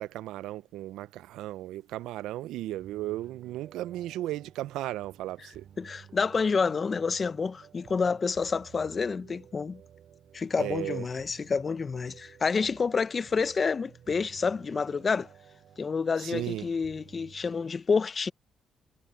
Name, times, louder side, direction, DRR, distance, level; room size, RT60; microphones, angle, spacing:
voice 1, 0.0-5.7 10.6-11.1 16.2-16.7, right 15 dB, 90° right, 0.4 m, -35 dB
sound 1, 2.8-17.7, right 9 dB, 65° right, 4.1 m, -54 dB
voice 2, 5.8-9.8 10.3-15.3 15.8-18.3, left 5 dB, 35° left, 0.6 m, -28 dB
cardioid pair, 90°, 0 cm